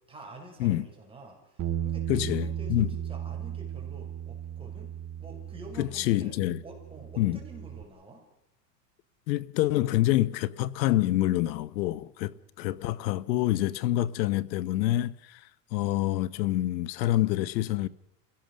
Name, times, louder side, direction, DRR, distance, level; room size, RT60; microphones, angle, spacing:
voice 1, 0.1-4.9 5.2-8.2 12.3-12.4, right 2 dB, 10° right, 5.9 m, -48 dB
Bass guitar, 1.6-7.8, right 10 dB, 35° right, 1.3 m, -36 dB
voice 2, 2.1-2.9 5.8-6.6 7.2-7.4 9.3-15.4 15.7-17.9, left 15 dB, 85° left, 1.1 m, -27 dB
28.5 x 16.5 x 6.4 m
supercardioid pair, 135°, 50 cm